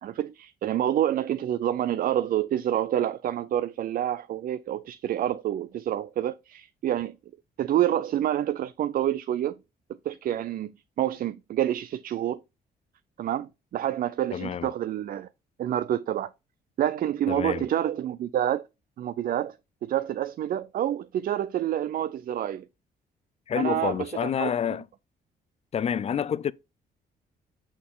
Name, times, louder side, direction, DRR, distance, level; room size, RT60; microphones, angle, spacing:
voice 1, 0.0-7.2 7.6-9.5 10.0-10.7 11.0-12.4 13.2-15.3 15.6-16.3 16.8-18.6 19.0-19.6 19.8-22.6 23.6-24.5, right 11 dB, 60° right, 0.4 m, -28 dB
voice 2, 14.3-14.7 17.3-17.7 23.5-24.9 25.7-26.5, left 8 dB, 40° left, 0.4 m, -28 dB
6.2 x 5.7 x 3.7 m
cardioid pair, 100°, 17 cm